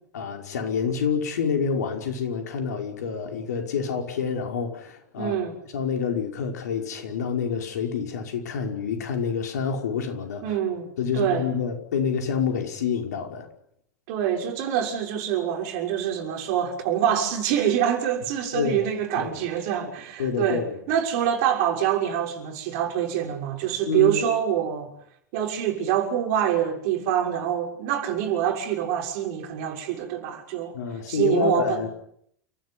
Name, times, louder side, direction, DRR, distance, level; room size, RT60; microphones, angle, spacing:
voice 1, 0.1-5.4 5.7-10.5 11.0-13.5 18.5-18.8 19.2-19.3 20.2-20.8 23.9-24.2 30.7-31.9, left 6 dB, 75° left, 5.5 m, -27 dB
voice 2, 5.2-5.6 10.4-11.5 14.1-24.9 25.3-30.7 31.1-31.9, right 10 dB, 60° right, 6.4 m, -25 dB
29.5 x 16.0 x 9.9 m
hypercardioid pair, 85°, 9 cm